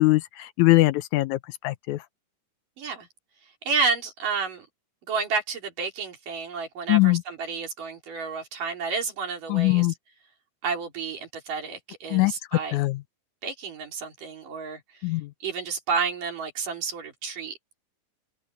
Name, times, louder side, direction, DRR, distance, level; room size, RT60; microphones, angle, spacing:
voice 1, 0.0-2.0 6.9-7.2 9.5-9.9 12.1-12.3 12.7-13.0 15.0-15.3, left 20 dB, 80° left, 1.7 m, -21 dB
voice 2, 2.8-3.1 3.6-4.7 5.1-9.9 10.6-12.9 13.4-15.1 15.4-17.6, right 5 dB, 75° right, 5.8 m, -30 dB
omnidirectional pair, 3.9 m